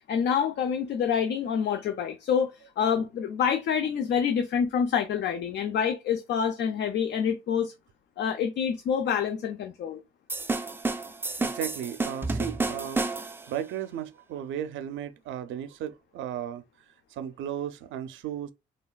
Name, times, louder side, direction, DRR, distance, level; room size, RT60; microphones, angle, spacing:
voice 1, 0.1-7.7 8.2-10.0, left 7 dB, 60° left, 0.4 m, -27 dB
sound 1, 10.3-13.5, right 3 dB, 10° right, 0.3 m, -30 dB
voice 2, 11.4-16.6 17.1-18.5, right 10 dB, 75° right, 0.5 m, -35 dB
3.3 x 2.3 x 2.2 m
cardioid pair, 90°, 20 cm